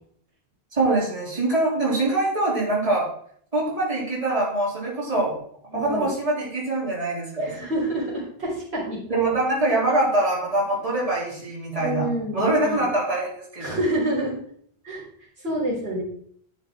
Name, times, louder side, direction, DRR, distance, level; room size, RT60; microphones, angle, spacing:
voice 1, 0.7-3.1 3.5-5.4 5.7-7.5 9.1-12.1 12.3-13.8, right 2 dB, 35° right, -6 dB, 3.4 m, -24 dB
voice 2, 5.7-6.1 7.4-9.0 11.8-12.8 13.6-14.4 14.8-15.0 15.4-16.0, right 1 dB, 85° right, -6 dB, 4.2 m, -27 dB
10.5 x 6.5 x 3.7 m, 0.62 s
omnidirectional pair, 1.1 m